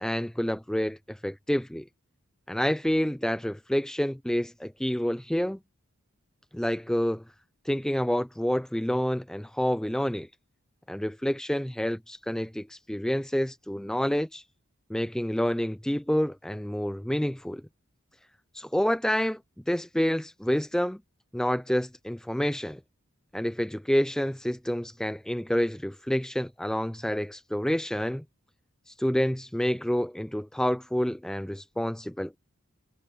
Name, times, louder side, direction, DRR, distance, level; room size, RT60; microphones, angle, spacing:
voice 1, 0.0-1.8 2.5-5.6 6.5-7.2 7.6-10.3 10.9-14.4 14.9-17.6 18.5-19.4 19.7-21.0 21.3-22.8 23.3-28.2 28.9-32.4, equal, 5° left, 0.3 m, -28 dB
head